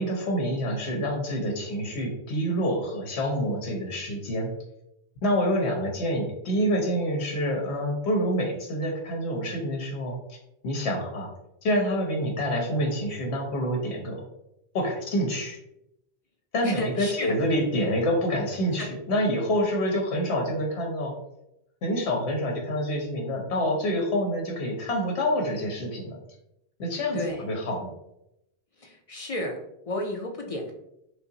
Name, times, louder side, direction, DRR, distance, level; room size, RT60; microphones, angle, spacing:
voice 1, 0.0-4.5 5.2-10.4 10.6-11.3 11.6-14.3 14.7-15.6 16.5-21.1 21.8-26.2 26.8-27.2 27.5-27.9, equal, 80° left, 0 dB, 1.0 m, -27 dB
voice 2, 16.6-17.4 18.8-18.9 27.1-27.5 28.8-30.7, left 2 dB, 50° left, 1 dB, 0.4 m, -33 dB
5.1 x 2.0 x 2.7 m, 0.83 s
omnidirectional pair, 1.1 m